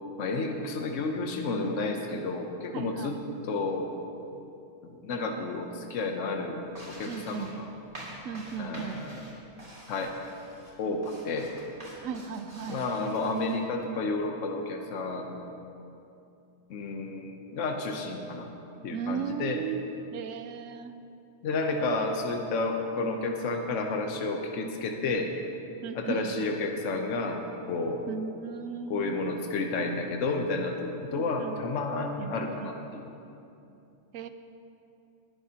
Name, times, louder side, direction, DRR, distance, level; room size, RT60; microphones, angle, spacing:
voice 1, 0.2-3.2 3.5-3.9 4.8-6.6 7.0-7.6 8.6-9.2 9.9-10.1 10.8-11.5 12.7-15.4 16.7-18.5 18.8-19.6 21.4-25.3 26.0-28.0 28.9-33.1, left 3 dB, 75° left, 3 dB, 1.2 m, -31 dB
voice 2, 2.7-3.2 7.1-7.5 8.2-9.0 12.0-12.9 18.9-19.8 20.1-20.9 25.8-26.5 28.1-29.2 31.1-31.6 32.2-32.7 34.1-34.3, right 6 dB, 85° right, 9 dB, 1.0 m, -36 dB
sound 1, 6.7-13.6, right 1 dB, 40° right, 2.5 m, -47 dB
18.5 x 11.0 x 2.9 m, 2.7 s
omnidirectional pair, 1.3 m